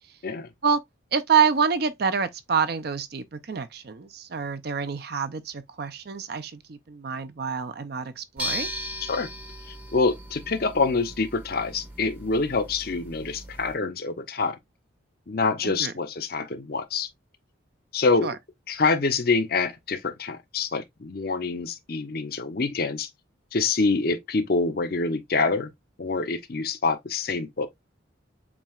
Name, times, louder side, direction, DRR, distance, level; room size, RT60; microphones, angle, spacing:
voice 1, 1.1-8.7 15.6-15.9 18.2-18.3, right 6 dB, 50° right, 0.5 m, -27 dB
sound 1, 8.4-13.8, equal, 10° right, 0.7 m, -37 dB
voice 2, 9.9-14.6 15.3-17.1 17.9-18.3 18.7-23.1 23.5-25.7 26.0-27.7, left 4 dB, 50° left, 0.7 m, -26 dB
7.2 x 2.8 x 2.3 m
head